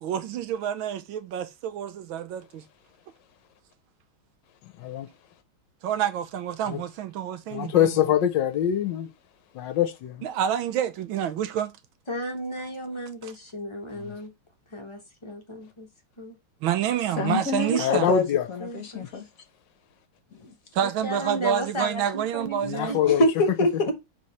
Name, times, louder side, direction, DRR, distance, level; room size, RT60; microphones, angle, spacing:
voice 1, 0.0-2.6 5.8-8.0 10.2-11.8 13.2-13.3 16.6-18.1 20.7-23.0, right 10 dB, 80° right, 1.5 m, -28 dB
voice 2, 7.5-9.1 9.5-10.2 13.9-14.1 17.8-18.5 22.7-23.3, left 10 dB, 70° left, 1.3 m, -24 dB
voice 3, 12.1-14.3 14.7-15.9 16.2-16.4 18.6-19.1 20.8-23.2, equal, 20° left, 0.8 m, -34 dB
voice 4, 17.2-19.2 20.3-20.5 23.1-23.9, left 1 dB, 50° left, 1.3 m, -26 dB
4.8 x 4.2 x 5.5 m
omnidirectional pair, 2.2 m